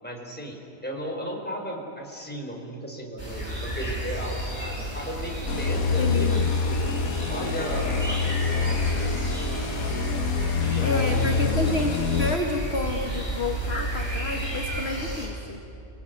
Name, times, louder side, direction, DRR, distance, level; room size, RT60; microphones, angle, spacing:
voice 1, 0.0-9.4 10.6-11.6, equal, 5° left, 0 dB, 4.3 m, -36 dB
sound 1, 3.2-15.3, right 1 dB, 15° right, 7.0 m, -32 dB
sound 2, 5.5-12.4, left 5 dB, 60° left, 1.6 m, -26 dB
voice 2, 6.0-6.5 10.8-15.6, left 2 dB, 40° left, 3 dB, 1.8 m, -29 dB
30.0 x 20.0 x 9.3 m, 2.7 s
omnidirectional pair, 1.8 m